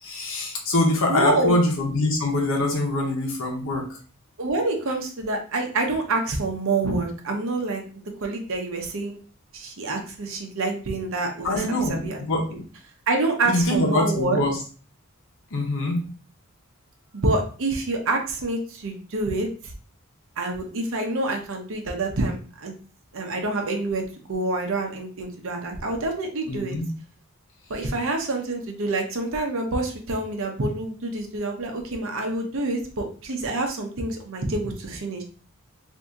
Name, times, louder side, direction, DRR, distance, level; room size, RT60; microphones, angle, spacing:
voice 1, 0.0-3.9 11.4-12.6 13.4-14.6 15.5-16.0 26.5-26.9, left 1 dB, 60° left, 0 dB, 1.0 m, -24 dB
voice 2, 1.1-1.6 4.4-7.8 8.2-9.2 9.5-11.6 11.9-12.2 13.1-14.4 17.1-19.7 20.4-22.7 23.1-26.7 27.7-35.2, right 2 dB, 65° right, 4 dB, 0.7 m, -27 dB
2.7 x 2.7 x 3.5 m, 0.40 s
head